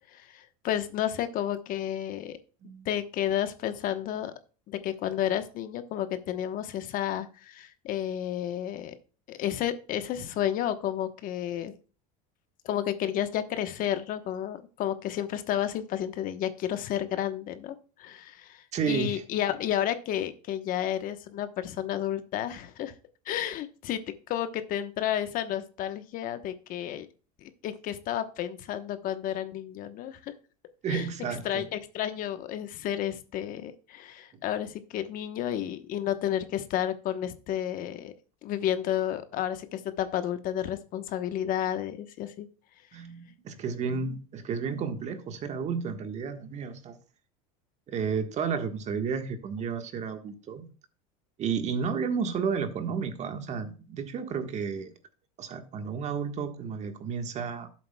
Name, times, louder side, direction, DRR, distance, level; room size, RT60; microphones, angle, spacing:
voice 1, 0.1-2.4 2.8-4.3 4.7-8.9 9.3-11.7 12.6-22.9 23.3-27.1 27.4-30.3 30.9-31.1 31.4-38.1 38.4-42.5, left 11 dB, 50° left, 10 dB, 1.0 m, -31 dB
voice 2, 18.7-19.2 30.8-31.7 42.9-47.0 47.9-50.7 51.4-54.9 55.4-57.7, right 6 dB, 40° right, 7 dB, 1.4 m, -32 dB
12.5 x 7.6 x 2.2 m, 0.37 s
supercardioid pair, 110°, 18 cm